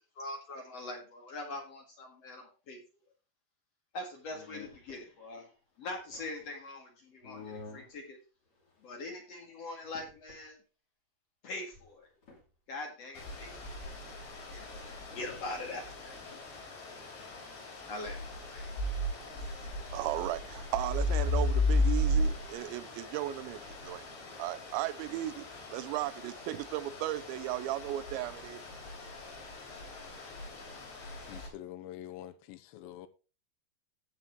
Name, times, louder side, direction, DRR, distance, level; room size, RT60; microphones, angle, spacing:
voice 1, 0.2-2.8 3.9-5.5 5.8-8.2 8.8-10.6 11.4-12.1 12.7-13.9 14.5-16.2 17.5-17.6 17.9-18.7, left 2 dB, 50° left, 2.0 m, -43 dB
sound 1, 4.2-5.0 5.7-6.5 7.2-8.0 8.5-9.1 9.4-9.5 9.8-10.4 11.7-12.5 14.7-14.8 15.1-15.4 15.8-16.5 20.0-20.7, left 4 dB, 30° left, 2.4 m, -51 dB
sound 2, 13.1-31.5, left 1 dB, 70° left, 6.0 m, -36 dB
voice 2, 19.6-28.6, right 15 dB, 85° right, 2.9 m, -36 dB
voice 3, 31.2-33.1, left 13 dB, 90° left, 3.1 m, -46 dB
16.5 x 5.8 x 3.1 m
omnidirectional pair, 5.3 m